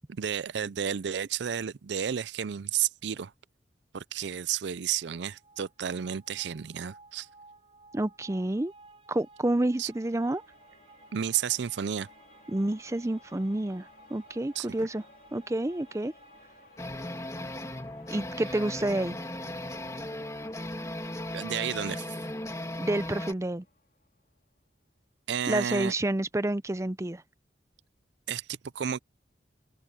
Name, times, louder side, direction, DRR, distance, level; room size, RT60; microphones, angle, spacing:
voice 1, 0.1-3.3 3.9-7.3 9.8-9.9 11.1-12.1 14.5-14.9 21.3-22.1 25.3-25.9 28.3-29.0, right 8 dB, 75° right, 0.5 m, -32 dB
sound 1, 4.9-17.7, right 3 dB, 35° right, 4.0 m, -57 dB
voice 2, 7.9-8.7 9.1-10.4 12.5-15.0 15.3-16.1 18.1-19.2 22.8-23.6 25.5-27.2, right 1 dB, 15° right, 0.5 m, -29 dB
sound 2, 9.8-24.4, left 3 dB, 55° left, 4.3 m, -58 dB
sound 3, 16.8-23.3, left 1 dB, 15° left, 2.1 m, -37 dB
open air
head